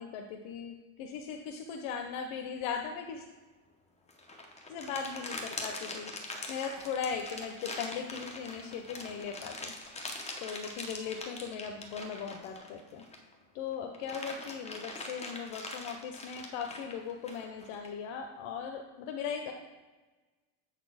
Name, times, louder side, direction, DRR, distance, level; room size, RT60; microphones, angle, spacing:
voice 1, 0.0-3.2 4.7-13.0 13.5-19.5, left 6 dB, 70° left, 4 dB, 0.7 m, -39 dB
sound 1, 4.1-13.3 13.7-17.9, left 2 dB, 15° left, 0.7 m, -42 dB
Speech, 6.4-8.2 8.5-9.9 10.2-11.2 11.8-12.6, right 5 dB, 65° right, 1.2 m, -58 dB
7.7 x 4.2 x 4.9 m, 1.3 s
cardioid pair, 145°, 49 cm